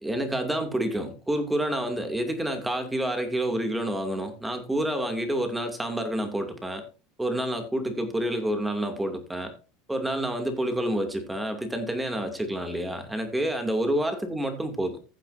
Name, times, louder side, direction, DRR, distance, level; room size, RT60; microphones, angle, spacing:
voice 1, 0.0-6.8 7.2-9.5 9.9-15.1, right 1 dB, 5° right, 2.6 m, -28 dB
15.5 x 7.8 x 2.7 m
supercardioid pair, 115°, 0 cm